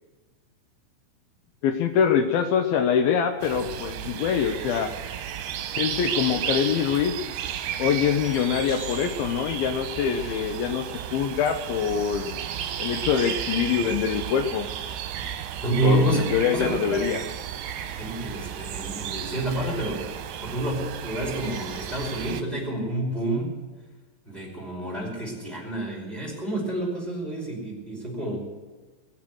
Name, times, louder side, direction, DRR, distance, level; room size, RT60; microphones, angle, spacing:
voice 1, 1.6-4.9 5.8-7.4 7.8-12.4 12.8-14.7 15.8-17.2, left 7 dB, 80° left, 7 dB, 2.6 m, -24 dB
sound 1, 3.4-22.4, right 9 dB, 80° right, 2.8 m, -33 dB
voice 2, 15.6-16.2 16.5-17.0 18.0-20.0 20.4-23.7 24.2-28.4, right 1 dB, ahead, -3 dB, 5.0 m, -28 dB
21.0 x 7.5 x 7.9 m, 1.3 s
omnidirectional pair, 4.3 m